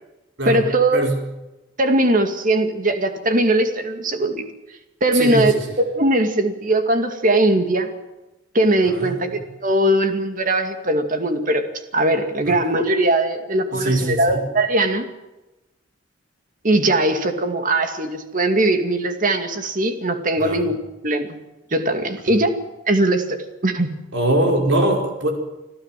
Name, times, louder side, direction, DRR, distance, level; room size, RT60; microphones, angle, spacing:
voice 1, 0.5-1.0 1.8-4.5 5.0-7.9 8.5-11.7 11.9-15.1 16.6-21.4 21.7-22.6 22.9-24.0, right 1 dB, 45° right, 7 dB, 2.3 m, -20 dB
voice 2, 5.1-5.6 8.8-9.2 12.5-12.6 13.7-14.4 20.4-20.6 24.1-25.3, right 1 dB, 65° right, 2 dB, 5.2 m, -22 dB
26.0 x 14.5 x 7.6 m, 1.0 s
head